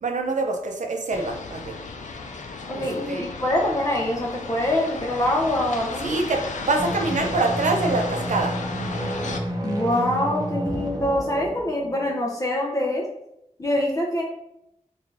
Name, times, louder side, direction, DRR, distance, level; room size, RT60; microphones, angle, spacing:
voice 1, 0.0-1.7 2.7-3.3 6.0-8.6, right 3 dB, 80° right, 3 dB, 0.5 m, -25 dB
sound 1, 1.1-9.4, left 4 dB, 85° left, 0.4 m, -35 dB
voice 2, 2.7-6.1 9.6-13.0 13.6-14.2, left 1 dB, 30° left, -2 dB, 0.5 m, -24 dB
sound 2, 6.7-12.3, right 1 dB, 30° right, 0.6 m, -30 dB
3.1 x 2.3 x 3.7 m, 0.81 s
wide cardioid pair, 105°, 12 cm